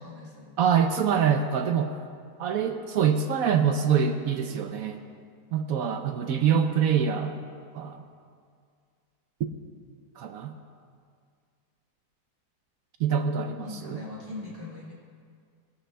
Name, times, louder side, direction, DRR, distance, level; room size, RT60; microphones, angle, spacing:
voice 1, 0.0-0.6 13.6-14.9, left 2 dB, 35° right, -6 dB, 1.7 m, -40 dB
voice 2, 0.6-1.9 2.4-5.0 5.5-7.4 7.7-8.0 10.2-10.5 13.0-14.0, right 7 dB, 70° right, 6 dB, 0.9 m, -25 dB
18.5 x 11.5 x 2.2 m, 2.2 s
omnidirectional pair, 1.8 m